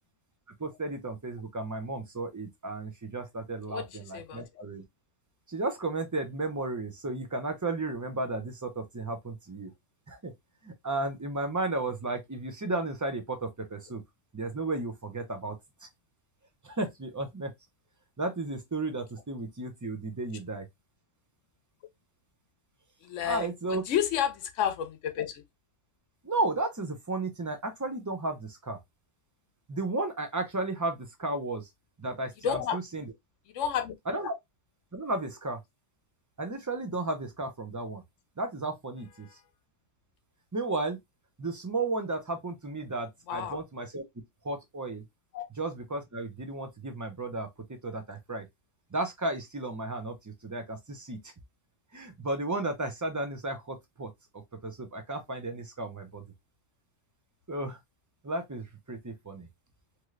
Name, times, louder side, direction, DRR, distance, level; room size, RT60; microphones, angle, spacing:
voice 1, 0.6-4.8 5.5-9.7 10.1-10.3 10.6-14.0 14.3-15.6 16.6-17.5 18.2-20.7 23.2-23.8 26.2-28.8 29.7-31.7 32.0-33.1 34.1-34.3 34.9-35.6 36.4-38.0 38.4-39.3 40.5-41.0 41.4-44.0 44.4-45.0 45.6-48.5 48.9-51.3 51.9-54.1 54.6-56.2 57.5-57.8 58.2-59.5, right 2 dB, 30° right, 0.3 m, -33 dB
voice 2, 23.0-25.4 32.4-32.8 33.5-33.9 43.3-43.6 45.3-45.5, left 9 dB, 80° left, 1.0 m, -31 dB
3.2 x 2.9 x 2.4 m
omnidirectional pair, 1.3 m